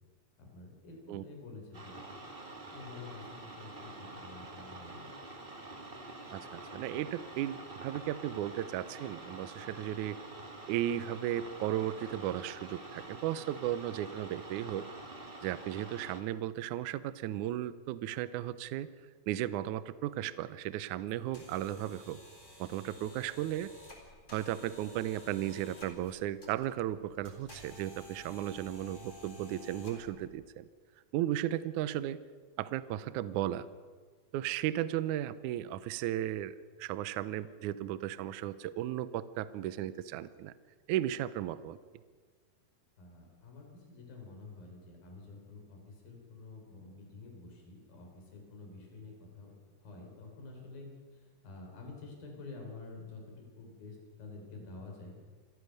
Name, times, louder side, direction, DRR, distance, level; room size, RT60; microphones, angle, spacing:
voice 1, 0.4-2.1 2.7-5.1 43.0-55.2, left 3 dB, 70° left, 1 dB, 5.8 m, -49 dB
sound 1, 1.7-16.2, right 2 dB, 25° right, 1.3 m, -47 dB
voice 2, 6.3-10.2 10.7-14.9 15.4-18.9 19.3-22.2 22.6-23.7 24.3-30.7 31.1-32.2 32.6-33.7 34.3-36.5 36.8-40.5 40.9-41.8, right 12 dB, 90° right, 15 dB, 1.7 m, -35 dB
sound 2, 21.1-30.3, left 1 dB, 20° left, 4.0 m, -53 dB
27.5 x 14.0 x 6.6 m, 1.5 s
omnidirectional pair, 4.4 m